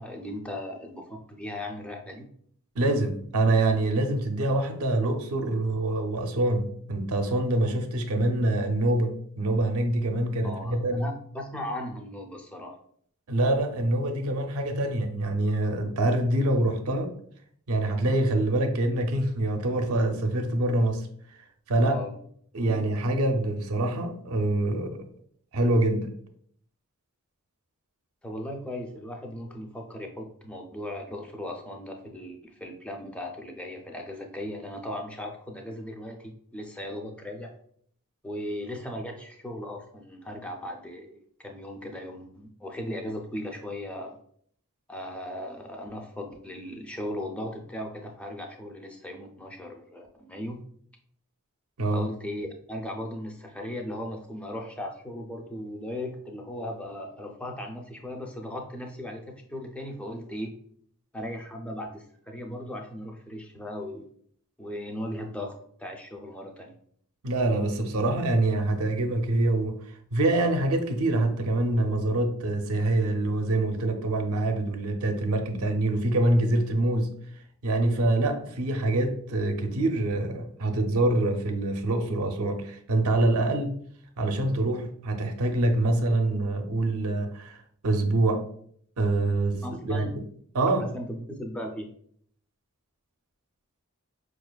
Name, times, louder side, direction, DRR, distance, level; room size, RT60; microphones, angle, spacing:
voice 1, 0.0-2.3 10.4-12.8 21.8-22.2 22.7-22.8 28.2-37.5 38.2-44.2 44.9-50.6 51.9-60.5 61.1-64.1 64.6-66.7 78.0-78.1 89.6-90.1 90.9-91.9, left 1 dB, 5° left, 0.4 m, -37 dB
voice 2, 2.8-11.1 13.3-17.1 17.7-21.4 21.7-22.0 22.5-25.1 25.5-26.1 51.8-52.1 67.2-77.2 77.6-83.8 84.2-88.4 89.0-90.1 90.5-90.9, right 2 dB, 70° right, 0.5 m, -25 dB
4.9 x 2.4 x 2.2 m
head